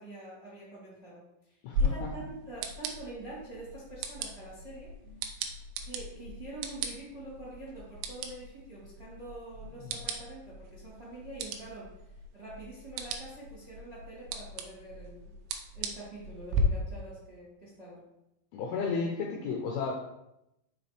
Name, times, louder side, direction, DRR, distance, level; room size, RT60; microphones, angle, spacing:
voice 1, 0.0-4.9 5.8-11.9 12.3-15.3 15.7-18.0, right 2 dB, 25° right, -7 dB, 1.5 m, -45 dB
voice 2, 1.6-2.1 18.5-19.9, left 5 dB, 80° left, 0 dB, 2.3 m, -33 dB
sound 1, 1.7-16.6, right 2 dB, 85° right, 2.9 m, -38 dB
6.3 x 5.4 x 3.3 m, 0.86 s
omnidirectional pair, 5.2 m